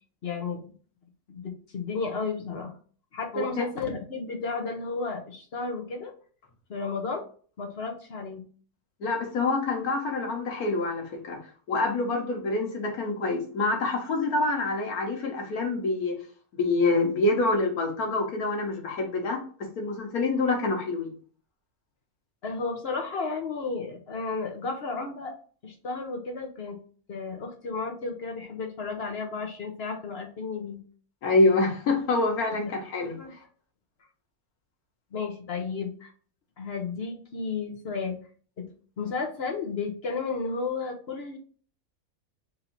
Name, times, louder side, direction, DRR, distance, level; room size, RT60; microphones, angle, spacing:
voice 1, 0.2-0.7 1.3-2.7 3.1-6.1 6.7-7.2 7.6-8.4 22.4-25.3 25.6-26.8 27.1-30.8 32.7-32.8 33.2-33.3 35.1-36.1 36.6-38.2 38.6-38.7 39.0-41.4, left 4 dB, 50° left, 3 dB, 0.9 m, -33 dB
voice 2, 3.3-3.6 9.0-11.4 11.7-16.2 16.5-19.4 19.8-21.1 31.2-33.2, left 2 dB, 90° left, 2 dB, 1.6 m, -26 dB
4.0 x 2.7 x 4.4 m, 0.43 s
omnidirectional pair, 1.5 m